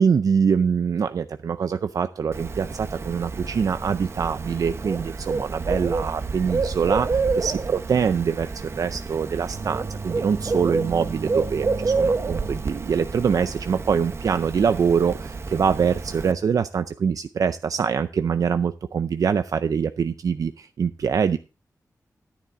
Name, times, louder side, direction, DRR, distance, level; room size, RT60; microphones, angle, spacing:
voice 1, 0.0-21.4, right 6 dB, 70° right, 11 dB, 0.5 m, -24 dB
Bird, 2.3-16.3, right 4 dB, 45° right, 0.8 m, -28 dB
11.5 x 10.0 x 3.6 m, 0.30 s
wide cardioid pair, 150°, 6 cm